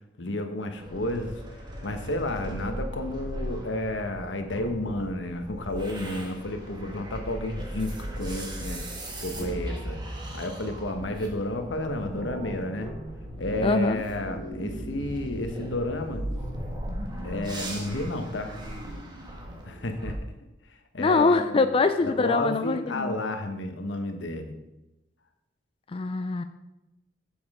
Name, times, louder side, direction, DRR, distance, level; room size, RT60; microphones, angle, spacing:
voice 1, 0.2-1.4 1.8-8.8 9.2-10.0 10.3-12.9 13.4-16.2 17.2-18.5 19.7-20.2 20.9-21.7 22.0-24.5, left 1 dB, 85° left, 6 dB, 1.1 m, -31 dB
sound 1, 0.8-20.1, right 1 dB, 25° right, 1.4 m, -37 dB
voice 2, 13.6-14.0 21.0-23.2 25.9-26.4, left 3 dB, 30° left, 8 dB, 0.4 m, -23 dB
7.6 x 7.0 x 4.8 m, 0.96 s
head